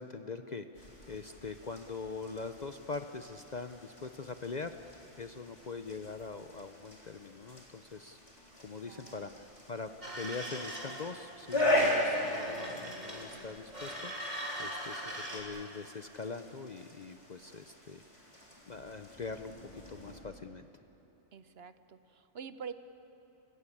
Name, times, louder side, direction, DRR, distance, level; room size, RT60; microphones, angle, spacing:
voice 1, 0.0-8.2 8.6-9.9 10.2-18.0 18.7-20.7, left 4 dB, 45° left, 8 dB, 0.6 m, -43 dB
sound 1, 0.7-20.2, left 1 dB, 25° left, 3.6 m, -39 dB
voice 2, 8.9-9.3 21.3-22.7, right 6 dB, 60° right, 12 dB, 0.9 m, -46 dB
sound 2, 10.0-11.1 11.5-13.4 13.7-15.4, equal, 35° right, 3.6 m, -41 dB
29.5 x 16.5 x 8.6 m, 3.0 s
omnidirectional pair, 1.3 m